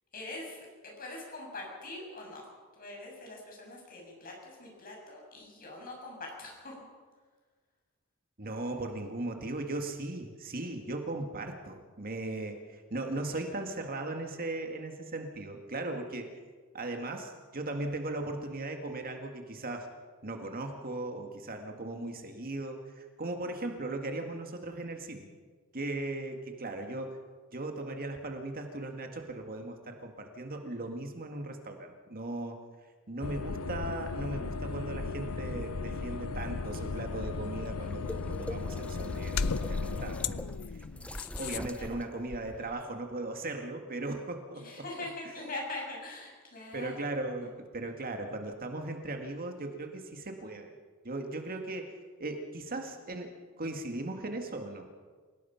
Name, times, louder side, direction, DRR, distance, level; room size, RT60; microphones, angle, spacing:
voice 1, 0.1-2.5 2.7-6.8 41.8-41.9 44.5-47.1, left 2 dB, 40° left, -1 dB, 7.4 m, -43 dB
voice 2, 8.4-16.3 16.7-19.9 20.2-25.3 25.7-27.2 27.5-32.6 33.1-40.5 41.4-44.7 46.7-50.7 51.0-51.9 52.2-53.3 53.6-54.9, right 2 dB, 40° right, 4 dB, 2.0 m, -38 dB
sound 1, 33.2-41.6, left 4 dB, 75° left, 0.7 m, -35 dB
sound 2, 36.6-42.8, left 1 dB, 5° left, 0.7 m, -45 dB
28.5 x 18.0 x 5.8 m, 1.5 s
head